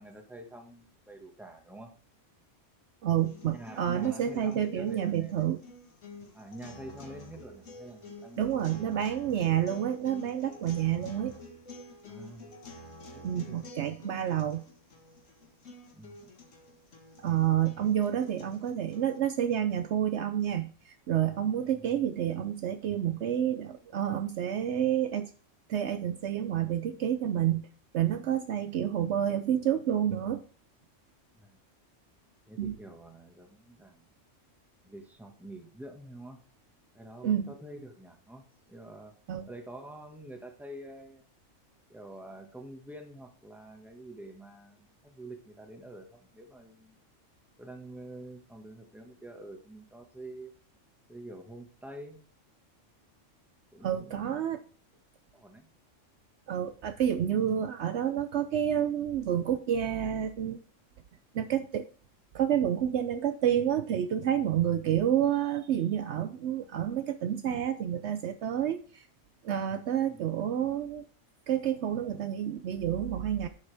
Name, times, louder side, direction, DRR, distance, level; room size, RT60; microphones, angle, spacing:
voice 1, 0.0-1.9 3.5-5.3 6.3-8.9 12.1-12.6 13.1-13.6 15.9-16.3 21.6-22.0 31.3-31.6 32.5-34.0 34.8-36.4 36.9-39.1 39.4-41.2 41.9-47.0 47.6-50.5 51.1-52.2 53.7-54.5 55.3-55.7 70.0-70.3, right 1 dB, ahead, 3 dB, 1.4 m, -47 dB
voice 2, 3.0-5.6 8.4-11.3 13.2-14.6 17.2-25.3 25.7-27.7 27.9-30.4 32.6-32.7 37.2-37.5 39.3-39.5 53.8-54.6 56.5-60.6 61.3-61.9 62.3-69.1 69.4-71.0 71.5-73.5, right 10 dB, 70° right, 10 dB, 0.8 m, -29 dB
sound 1, 3.2-19.2, left 2 dB, 75° left, 2.0 m, -49 dB
11.0 x 7.0 x 3.4 m, 0.41 s
omnidirectional pair, 1.3 m